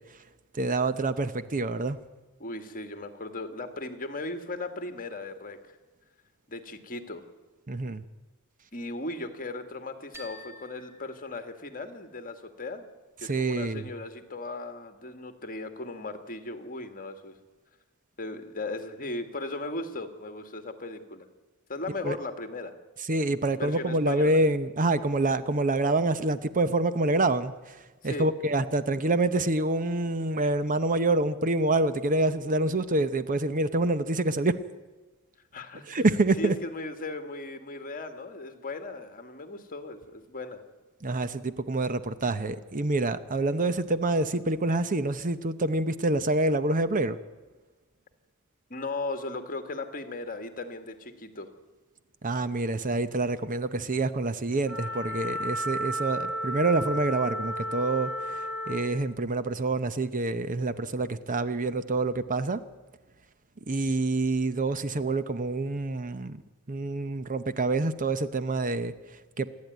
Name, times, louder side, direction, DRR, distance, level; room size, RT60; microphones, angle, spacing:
voice 1, 0.5-2.0 7.7-8.0 13.2-13.9 22.0-22.2 23.1-34.6 35.9-36.6 41.0-47.2 52.2-62.6 63.7-66.4 66.7-69.5, right 2 dB, 40° right, 13 dB, 0.8 m, -27 dB
voice 2, 2.4-5.6 6.5-7.2 8.7-12.8 13.2-17.3 18.2-21.3 21.7-22.7 23.5-24.4 28.0-28.3 35.5-36.0 36.4-40.6 48.7-51.5, left 2 dB, 40° left, 8 dB, 1.9 m, -37 dB
sound 1, 10.1-12.1, left 1 dB, 10° right, 2.9 m, -50 dB
Wind instrument woodwind instrument, 54.6-58.9, equal, 75° right, 4.7 m, -33 dB
27.5 x 10.5 x 9.4 m, 1.2 s
head